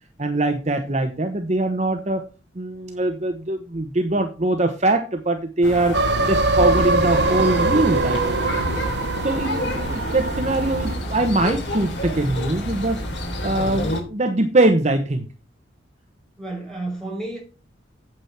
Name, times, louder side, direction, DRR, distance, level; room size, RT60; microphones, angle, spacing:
voice 1, 0.2-2.2 2.6-6.0 6.3-8.2 9.2-13.0 13.4-15.2, right 2 dB, 35° right, 1.1 m, -22 dB
sound 1, 5.6-14.0, left 1 dB, 60° left, 3.5 m, -29 dB
sound 2, 5.9-10.9, right 3 dB, 60° right, 0.9 m, -22 dB
voice 2, 9.6-10.0 13.4-13.7 16.4-17.4, right 2 dB, ahead, 5.2 m, -33 dB
8.8 x 8.2 x 5.9 m
head